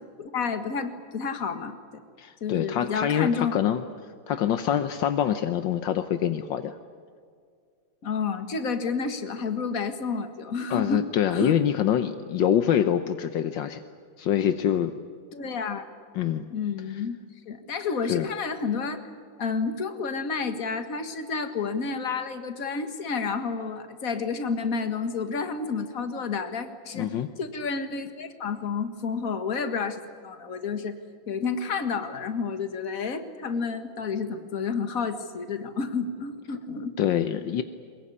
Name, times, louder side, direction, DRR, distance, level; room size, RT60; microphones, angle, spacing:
voice 1, 0.2-2.0 2.4-3.5 8.0-11.0 11.3-11.6 15.3-15.9 16.5-17.2 17.5-19.0 19.4-27.1 27.4-31.0 31.3-36.9, left 5 dB, 45° left, 8 dB, 2.0 m, -30 dB
voice 2, 2.2-3.8 4.3-6.8 10.7-13.8 14.2-14.9 16.1-16.4 18.1-18.3 26.9-27.3 37.0-37.6, left 10 dB, 75° left, 10 dB, 1.6 m, -25 dB
23.0 x 22.0 x 9.8 m, 2.1 s
omnidirectional pair, 2.1 m